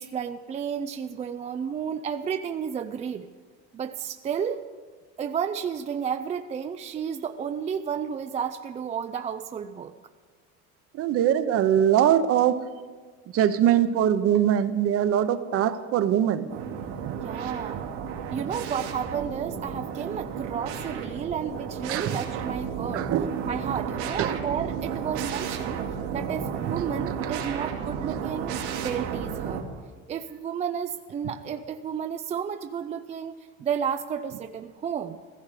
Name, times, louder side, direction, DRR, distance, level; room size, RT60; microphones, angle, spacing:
voice 1, 0.0-3.3 3.7-4.7 5.2-10.0 17.2-17.8 18.3-23.1 23.4-25.8 26.1-29.7 30.1-35.2, right 7 dB, 20° right, 8 dB, 0.4 m, -32 dB
voice 2, 11.0-12.6 13.3-16.5 17.1-17.2 21.9-22.2 22.9-23.3 24.2-24.3, right 10 dB, 45° right, 11 dB, 1.0 m, -22 dB
sound 1, 16.5-29.6, right 7 dB, 85° right, 2.6 m, -33 dB
15.5 x 14.5 x 5.0 m, 1.5 s
supercardioid pair, 130°, 32 cm